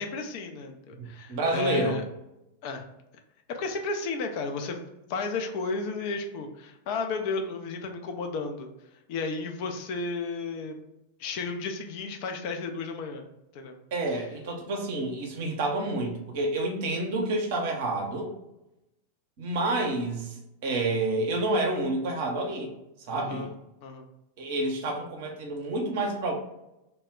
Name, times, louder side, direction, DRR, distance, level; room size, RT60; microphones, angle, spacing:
voice 1, 0.0-2.0 2.6-2.8 3.5-4.8 5.1-8.7 9.1-10.8 11.2-13.3 13.5-13.8 14.1-14.2 23.1-23.5 23.8-24.1, left 3 dB, 45° left, 4 dB, 0.4 m, -33 dB
voice 2, 1.0-2.0 13.9-18.3 19.4-22.7 23.1-23.5 24.4-26.3, right 2 dB, 50° right, 1 dB, 0.6 m, -29 dB
2.1 x 2.0 x 3.5 m, 0.89 s
figure-of-eight pair, 90°, 0 cm